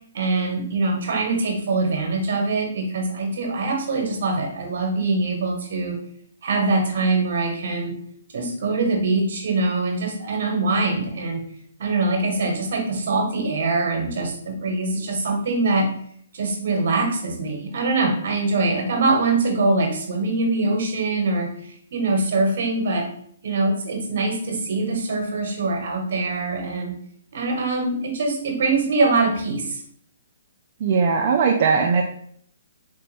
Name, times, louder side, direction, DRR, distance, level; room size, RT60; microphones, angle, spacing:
voice 1, 0.1-6.0 6.4-7.9 8.3-11.4 11.8-15.9 16.3-23.1 23.4-26.9 27.3-29.8, right 3 dB, 60° right, 1 dB, 1.4 m, -23 dB
voice 2, 30.8-32.0, right 5 dB, 45° right, 1 dB, 0.4 m, -19 dB
3.9 x 3.3 x 3.3 m, 0.63 s
hypercardioid pair, 150°, 0 cm